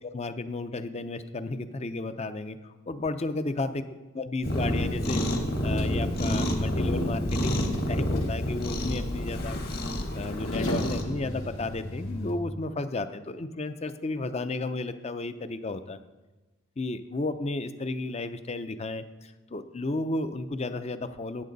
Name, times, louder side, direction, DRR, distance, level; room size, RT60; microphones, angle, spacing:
voice 1, 0.0-5.2 5.6-7.6 7.9-9.6 10.1-16.0 16.8-21.4, left 2 dB, 30° left, 11 dB, 0.5 m, -33 dB
Cat, 4.4-11.0, left 1 dB, 45° left, 1.3 m, -29 dB
sound 1, 5.0-12.3, equal, 75° left, 1.8 m, -37 dB
15.0 x 8.4 x 4.0 m, 1.2 s
head